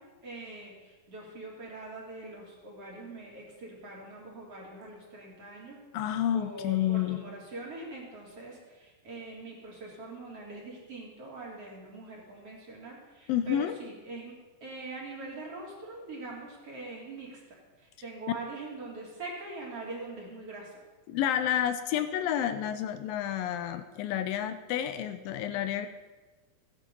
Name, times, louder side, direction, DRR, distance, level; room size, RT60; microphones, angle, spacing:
voice 1, 0.0-5.8 6.3-14.3 14.6-20.7, right 2 dB, 40° right, -3 dB, 3.7 m, -43 dB
voice 2, 5.9-7.2 13.3-13.8 21.1-25.9, left 10 dB, 80° left, 10 dB, 2.5 m, -30 dB
16.0 x 11.0 x 5.4 m, 1.2 s
omnidirectional pair, 4.2 m